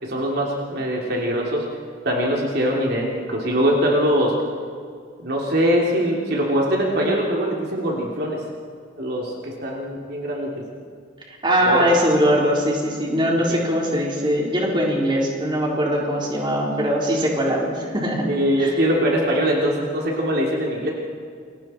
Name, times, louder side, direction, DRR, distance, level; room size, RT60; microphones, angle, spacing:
voice 1, 0.0-1.6 2.0-4.3 5.2-8.4 9.0-10.6 11.6-11.8 18.3-20.9, equal, 55° right, -2 dB, 3.2 m, -22 dB
voice 2, 11.3-18.3 18.6-18.7, equal, 25° right, -2 dB, 4.0 m, -21 dB
29.5 x 23.0 x 4.5 m, 2.1 s
head